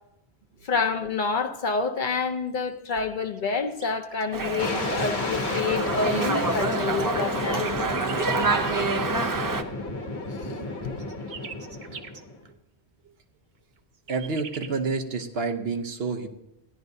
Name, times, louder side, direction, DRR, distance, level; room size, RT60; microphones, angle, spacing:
voice 1, 0.6-7.7 10.4-11.0, left 4 dB, 55° left, 0.8 m, -28 dB
sound 1, 3.3-5.7 7.0-8.8 10.4-12.2 13.8-14.8, right 6 dB, 50° right, 0.8 m, -43 dB
Dog, 4.3-9.6, right 3 dB, 30° right, 0.4 m, -27 dB
sound 2, 4.6-12.5, left 2 dB, 80° left, 1.4 m, -32 dB
voice 2, 14.1-16.3, right 4 dB, 70° right, 1.1 m, -29 dB
15.5 x 10.5 x 2.7 m
omnidirectional pair, 1.1 m